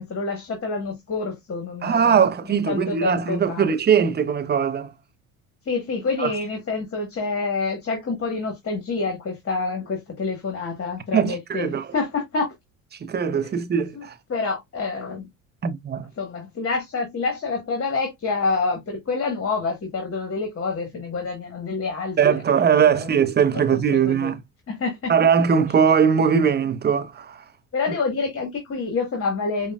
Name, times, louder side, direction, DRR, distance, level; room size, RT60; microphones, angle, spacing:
voice 1, 0.0-3.7 5.6-12.5 13.4-13.5 13.9-15.3 16.2-23.1 23.7-24.4 24.7-25.1 27.7-29.7, left 4 dB, 35° left, 1.3 m, -28 dB
voice 2, 1.8-4.9 6.2-6.3 11.1-11.9 13.0-14.1 15.6-16.1 22.2-24.4 25.1-27.4, right 7 dB, 25° right, 0.6 m, -20 dB
4.9 x 2.3 x 2.3 m
hypercardioid pair, 70°, 40 cm